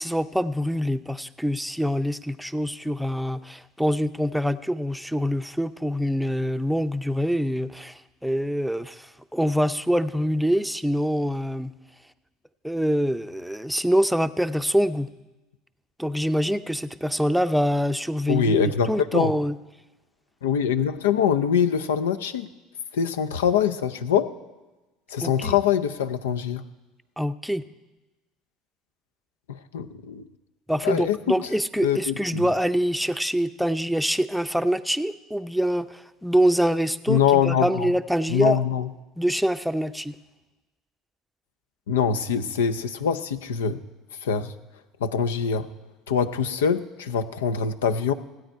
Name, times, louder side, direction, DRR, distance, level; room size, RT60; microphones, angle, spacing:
voice 1, 0.0-11.7 12.6-15.1 16.0-19.6 25.2-25.6 27.2-27.6 30.7-38.6 39.2-40.1, equal, ahead, 10 dB, 0.6 m, -25 dB
voice 2, 18.3-19.3 20.4-22.5 22.9-24.3 25.1-26.6 29.7-30.2 30.8-31.3 31.8-32.5 37.1-37.9 38.3-38.9 41.9-43.8 44.2-44.5 45.0-45.7 46.1-48.1, left 7 dB, 85° left, 11 dB, 0.6 m, -23 dB
16.5 x 9.1 x 4.5 m, 1.1 s
hypercardioid pair, 75°, 0 cm